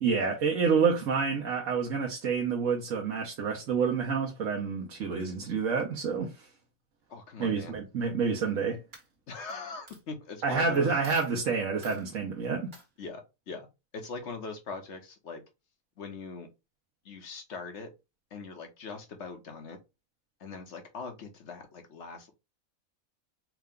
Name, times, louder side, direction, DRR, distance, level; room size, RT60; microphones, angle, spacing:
voice 1, 0.0-6.5 7.4-8.8 10.4-12.7, right 5 dB, 70° right, 1.2 m, -28 dB
voice 2, 7.1-7.8 9.3-10.9 13.0-13.7 13.9-15.4 16.0-16.5 17.0-17.9 18.3-19.8 20.4-22.3, left 4 dB, 55° left, 1.2 m, -41 dB
Coin (dropping), 8.3-8.6 8.9-9.5 9.9-10.0 10.7-10.8 11.0-11.3 11.8-12.0 12.7-12.9, right 3 dB, 45° right, 1.5 m, -50 dB
4.8 x 2.2 x 3.6 m
omnidirectional pair, 1.4 m